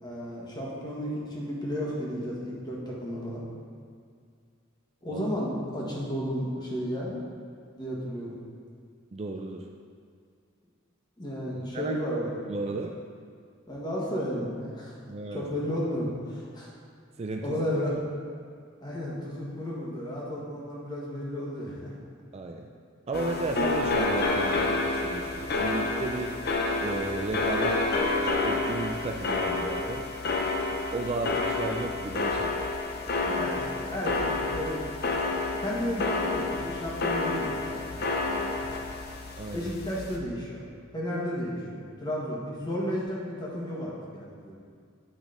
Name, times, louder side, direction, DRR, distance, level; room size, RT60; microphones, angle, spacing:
voice 1, 0.0-3.4 5.0-7.1 7.8-8.4 11.2-12.3 13.7-15.0 15.3-16.7 17.4-17.9 18.8-21.9 33.3-34.9 35.6-38.6 39.5-40.6 40.9-44.6, equal, 20° left, -5 dB, 1.4 m, -33 dB
voice 2, 9.1-9.7 11.5-12.0 12.5-13.0 15.1-15.5 17.2-17.6 17.9-18.0 22.3-22.7 23.1-26.4 26.8-27.8 28.4-30.1 30.9-32.5 39.4-39.7, right 2 dB, 30° right, 2 dB, 0.4 m, -34 dB
sound 1, 23.1-40.2, left 3 dB, 50° left, 0.7 m, -29 dB
9.0 x 5.0 x 3.8 m, 2.2 s
head